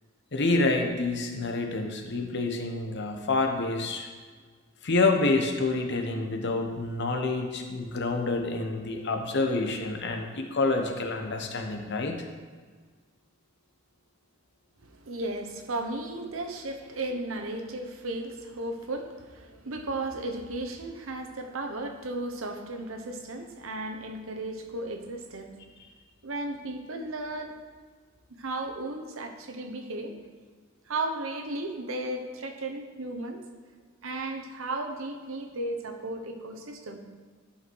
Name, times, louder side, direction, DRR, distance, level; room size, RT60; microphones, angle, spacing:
voice 1, 0.3-4.1 4.8-12.2, left 3 dB, 60° left, 4 dB, 1.0 m, -27 dB
voice 2, 14.8-25.6 26.2-27.5 28.3-30.1 30.9-33.4 34.0-37.0, right 2 dB, 90° right, 4 dB, 1.0 m, -35 dB
11.0 x 5.7 x 4.7 m, 1.5 s
head